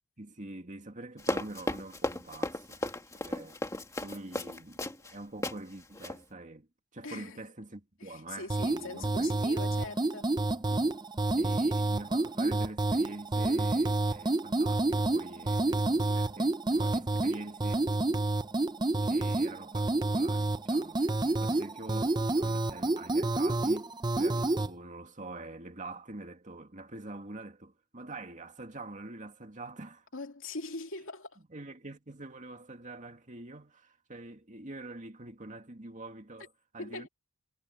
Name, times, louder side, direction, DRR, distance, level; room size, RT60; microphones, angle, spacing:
voice 1, 0.2-2.8 3.1-3.6 4.0-9.8 10.7-10.8 11.3-17.9 19.0-30.1 31.5-37.1, right 2 dB, 35° right, 2.3 m, -45 dB
Run, 1.2-5.1 5.4-5.6 5.9-6.2, left 1 dB, 15° left, 2.1 m, -35 dB
voice 2, 7.0-7.5 8.0-10.3 30.1-31.4 36.8-37.1, left 3 dB, 60° left, 2.7 m, -42 dB
sound 1, 8.5-24.7, right 2 dB, 20° right, 0.6 m, -29 dB
head